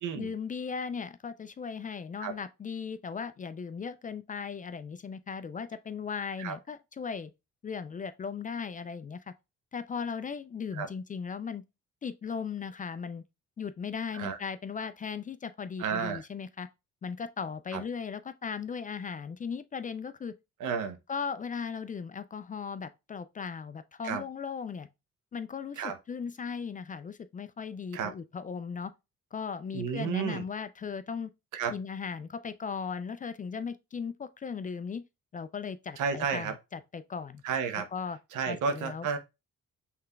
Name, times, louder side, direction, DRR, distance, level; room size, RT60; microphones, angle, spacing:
voice 1, 0.2-7.3 7.6-9.3 9.7-11.6 12.0-13.2 13.6-16.7 17.0-20.3 21.1-24.9 25.3-28.9 29.3-31.3 31.7-35.0 35.3-37.4 37.9-38.2 38.5-39.1, left 6 dB, 30° left, 0.3 m, -37 dB
voice 2, 15.8-16.2 17.7-17.8 20.6-21.0 24.0-24.2 25.8-26.0 27.9-28.1 29.7-30.4 31.5-31.7 36.0-36.5 37.4-37.9 38.3-39.2, right 6 dB, 80° right, 0.9 m, -32 dB
5.7 x 3.3 x 2.3 m
cardioid pair, 90°, 30 cm